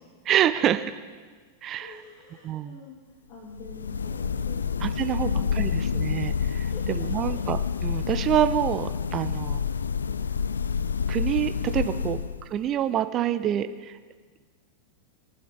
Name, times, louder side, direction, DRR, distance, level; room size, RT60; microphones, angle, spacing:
voice 1, 0.3-0.8 1.6-1.9 2.4-2.7 4.8-9.6 11.1-12.2 12.5-14.0, right 11 dB, 30° right, 11 dB, 0.7 m, -27 dB
voice 2, 1.8-5.8 6.6-7.3 13.1-13.3, left 4 dB, 40° left, -2 dB, 2.6 m, -47 dB
sound 1, 3.5-12.7, left 6 dB, 70° left, 0.4 m, -28 dB
23.0 x 8.0 x 3.9 m, 1.5 s
figure-of-eight pair, 90°, 0 cm